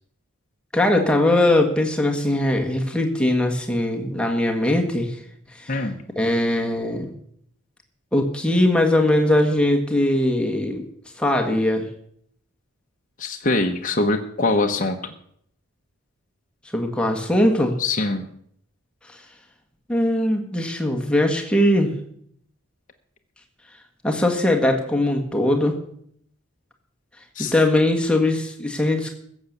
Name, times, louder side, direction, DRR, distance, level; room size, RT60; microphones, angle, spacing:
voice 1, 0.7-5.2 5.6-5.8 6.1-7.1 8.1-10.9 11.2-11.8 16.7-17.7 19.1-19.2 19.9-21.9 24.0-25.8 27.4-29.1, left 1 dB, 5° left, 1 dB, 1.5 m, -20 dB
voice 2, 5.7-6.0 13.2-15.0 17.8-18.3 27.4-27.5, left 2 dB, 35° left, 2 dB, 0.9 m, -23 dB
15.5 x 7.3 x 6.7 m, 0.66 s
head